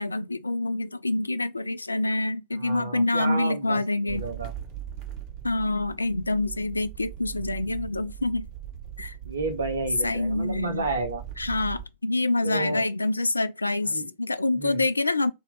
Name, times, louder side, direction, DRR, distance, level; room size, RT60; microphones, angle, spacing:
voice 1, 0.0-4.3 5.4-8.5 9.0-9.2 10.0-10.9 11.4-15.3, left 2 dB, 80° left, 0.3 m, -26 dB
voice 2, 2.5-4.5 7.3-7.4 9.2-11.2 12.4-12.8 13.9-14.1 14.5-14.8, right 3 dB, 70° right, 0.9 m, -31 dB
sound 1, 4.1-11.8, right 10 dB, 40° right, 1.0 m, -40 dB
3.8 x 2.9 x 3.8 m
figure-of-eight pair, 90°, 0 cm